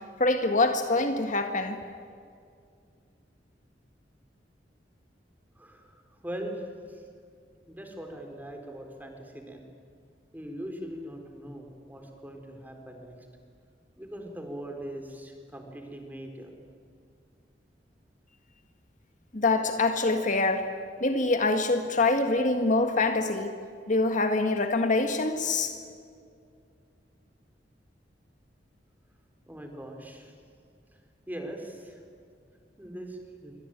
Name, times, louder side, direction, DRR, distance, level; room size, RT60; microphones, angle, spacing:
voice 1, 0.2-1.8 19.3-20.7 21.0-23.5 23.9-25.7, left 2 dB, 45° left, 6 dB, 1.8 m, -25 dB
voice 2, 5.6-6.6 6.9-7.0 7.7-9.7 10.3-13.2 14.0-16.5 29.5-30.3 31.3-32.0 32.8-33.5, right 1 dB, 10° right, 4 dB, 3.9 m, -41 dB
27.5 x 24.0 x 8.9 m, 2.3 s
head